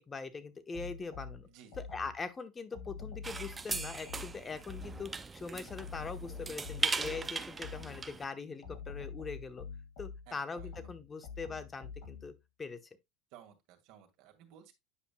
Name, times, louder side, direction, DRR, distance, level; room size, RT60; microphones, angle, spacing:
voice 1, 0.0-1.5 1.8-9.7 10.0-12.8, left 4 dB, 20° left, 1.1 m, -42 dB
sound 1, 0.7-2.3 2.7-5.2 5.7-8.2 8.6-12.4, left 6 dB, 70° left, 4.6 m, -46 dB
voice 2, 1.4-1.8 10.3-10.7 13.3-14.7, right 9 dB, 65° right, 2.0 m, -57 dB
sound 2, 3.2-8.2, right 4 dB, 20° right, 0.6 m, -38 dB
9.9 x 5.2 x 2.2 m
supercardioid pair, 100°, 0 cm